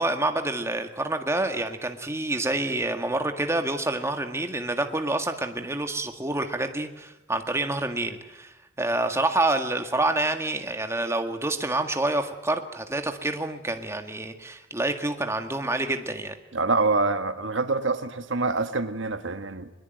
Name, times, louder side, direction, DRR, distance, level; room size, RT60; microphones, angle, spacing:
voice 1, 0.0-16.3, right 2 dB, 15° right, 6 dB, 1.9 m, -27 dB
voice 2, 16.5-19.7, right 3 dB, 70° right, 9 dB, 1.5 m, -26 dB
22.5 x 22.0 x 9.3 m, 0.95 s
head